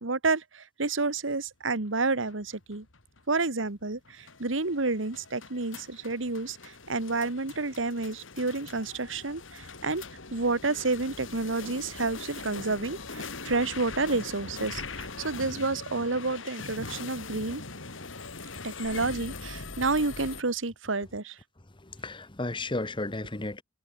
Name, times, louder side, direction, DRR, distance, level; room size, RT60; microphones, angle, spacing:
voice 1, 0.0-2.9 3.3-10.0 10.3-17.6 18.6-21.4, right 3 dB, 80° right, 1.7 m, -30 dB
sound 1, 1.8-20.4, left 4 dB, 90° left, 2.8 m, -42 dB
voice 2, 21.8-23.6, left 2 dB, 25° left, 1.4 m, -33 dB
head